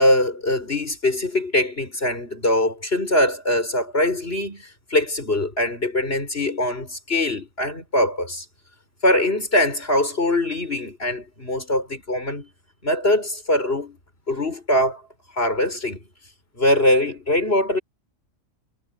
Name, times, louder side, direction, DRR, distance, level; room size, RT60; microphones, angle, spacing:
voice 1, 0.0-8.5 9.0-12.5 12.8-14.0 14.3-15.0 15.3-16.0 16.6-17.8, left 1 dB, 45° left, 7.2 m, -22 dB
omnidirectional pair, 1.5 m